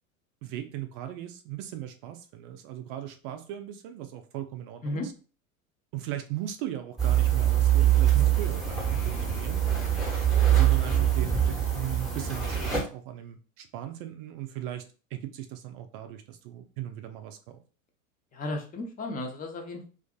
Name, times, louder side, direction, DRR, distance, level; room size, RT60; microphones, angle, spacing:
voice 1, 0.4-5.1 5.9-9.7 10.5-14.9 15.1-17.6, right 12 dB, 40° right, 7 dB, 0.4 m, -37 dB
sound 1, 7.0-12.8, right 10 dB, ahead, 1.0 m, -24 dB
voice 2, 18.3-19.9, left 2 dB, 20° left, 3 dB, 0.6 m, -34 dB
2.5 x 2.5 x 2.2 m, 0.36 s
hypercardioid pair, 90°, 43 cm